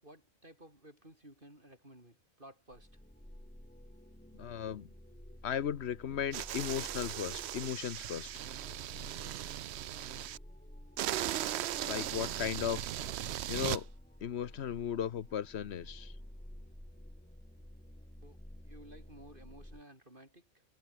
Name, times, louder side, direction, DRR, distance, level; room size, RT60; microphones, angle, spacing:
voice 1, 0.0-3.0 18.2-20.6, right 1 dB, 40° right, 7.7 m, -56 dB
sound 1, 2.7-19.8, equal, 5° left, 2.3 m, -52 dB
voice 2, 4.4-4.9 5.4-8.3 11.8-12.8 13.5-13.9 14.2-16.1, left 8 dB, 55° left, 1.0 m, -36 dB
sound 2, 6.3-10.4 11.0-13.8, right 13 dB, 65° right, 0.7 m, -38 dB
omnidirectional pair, 1.4 m